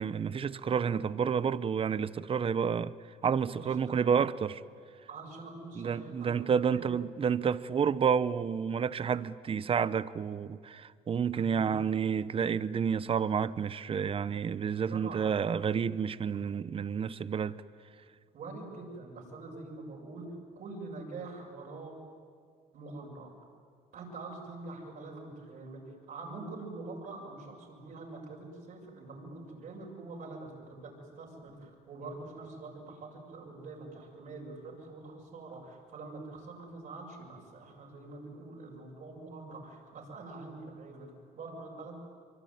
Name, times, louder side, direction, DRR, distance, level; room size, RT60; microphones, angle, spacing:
voice 1, 0.0-2.9 3.2-4.6 5.8-17.6, right 7 dB, 35° right, 0.8 m, -30 dB
voice 2, 3.5-4.1 5.1-6.5 6.7-6.8 11.4-11.8 14.9-15.3 18.3-22.0 22.7-23.3 23.9-42.0, right 3 dB, 55° right, 6.9 m, -45 dB
24.5 x 24.5 x 9.4 m
cardioid pair, 110°, 17 cm